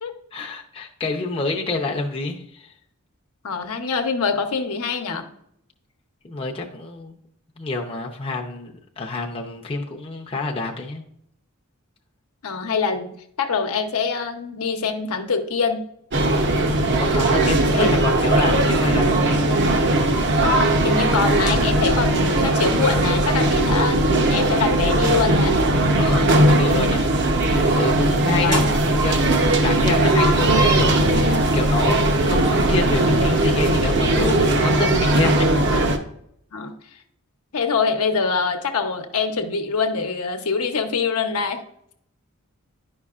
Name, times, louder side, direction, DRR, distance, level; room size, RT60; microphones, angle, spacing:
voice 1, 0.3-2.7 6.2-7.1 7.6-11.0 17.0-19.4 26.0-35.5, left 3 dB, 25° left, 0 dB, 0.6 m, -28 dB
voice 2, 3.4-5.3 12.4-13.1 13.4-15.9 17.7-17.9 20.8-25.6 28.4-28.7 36.5-36.7 37.5-41.6, left 5 dB, 80° left, 4 dB, 0.9 m, -24 dB
sound 1, 16.1-36.0, right 1 dB, 50° right, 0.7 m, -19 dB
10.5 x 5.4 x 2.4 m, 0.72 s
head